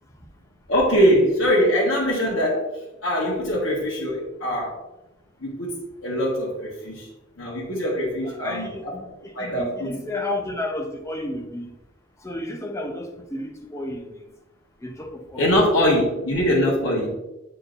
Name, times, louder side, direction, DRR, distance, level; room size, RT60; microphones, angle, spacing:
voice 1, 0.7-2.7 3.0-4.8 5.4-7.1 7.4-8.7 9.3-9.9 15.4-17.1, equal, 75° left, -6 dB, 1.4 m, -22 dB
voice 2, 8.2-11.7 12.2-14.2 14.8-15.5, left 1 dB, 15° left, 2 dB, 0.7 m, -32 dB
8.4 x 4.5 x 2.6 m, 0.98 s
head